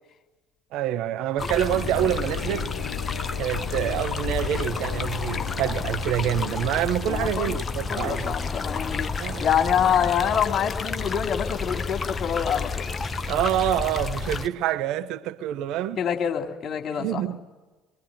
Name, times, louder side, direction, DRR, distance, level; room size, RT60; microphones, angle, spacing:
voice 1, 0.7-2.7 3.4-8.4 9.2-9.4 13.3-16.0 17.0-17.4, right 11 dB, 60° right, 1.0 m, -27 dB
sound 1, 1.4-14.5, left 4 dB, 30° left, 1.3 m, -30 dB
sound 2, 1.7-6.8, left 10 dB, 80° left, 1.0 m, -37 dB
voice 2, 7.1-9.1 9.4-12.9 16.0-17.3, left 8 dB, 45° left, 3.0 m, -26 dB
24.0 x 23.0 x 9.4 m
hypercardioid pair, 60°, 0 cm